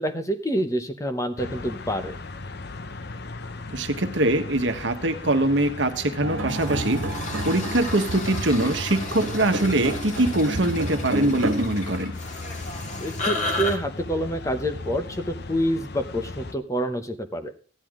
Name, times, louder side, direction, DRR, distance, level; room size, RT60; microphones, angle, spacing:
voice 1, 0.0-2.1 13.0-17.5, equal, 15° left, 7 dB, 0.9 m, -27 dB
sound 1, 1.4-16.5, left 3 dB, 55° left, 0.8 m, -38 dB
voice 2, 3.7-7.0 7.4-12.1, right 1 dB, 65° right, 7 dB, 1.3 m, -23 dB
sound 2, 6.2-11.7, right 1 dB, 90° right, 1.4 m, -30 dB
sound 3, 6.5-13.8, left 2 dB, 40° left, 2.0 m, -33 dB
14.0 x 10.0 x 3.7 m, 0.40 s
head